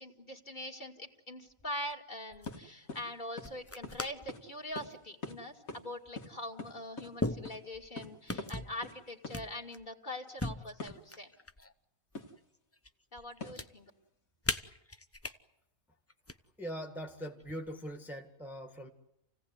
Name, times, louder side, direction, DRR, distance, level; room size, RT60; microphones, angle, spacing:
voice 1, 0.0-11.3 13.1-13.9, left 1 dB, 35° left, 4 dB, 2.6 m, -43 dB
sound 1, 1.5-1.9 2.3-2.6 3.4-4.3 4.7-5.0 6.1-6.2 7.2-7.9 8.3-8.8 9.3-9.9 10.4-11.7 12.1-12.9 13.2-13.7 14.4-15.3 16.1-16.3 17.4-17.9, left 2 dB, 15° left, 0.6 m, -39 dB
sound 2, 2.4-2.6 2.9-3.0 3.4-3.5 3.8-4.0 4.3-4.4 4.7-4.9 5.2-5.4 5.7-5.8 6.1-7.1 7.4-7.6 8.0-8.1 8.4-8.5 8.8-9.0 9.2-9.4 10.8-11.0 12.1-12.3 13.4-13.7, left 3 dB, 80° left, 2.6 m, -43 dB
voice 2, 16.6-18.9, equal, ahead, 3 dB, 1.9 m, -41 dB
28.5 x 17.0 x 9.5 m, 0.85 s
omnidirectional pair, 1.4 m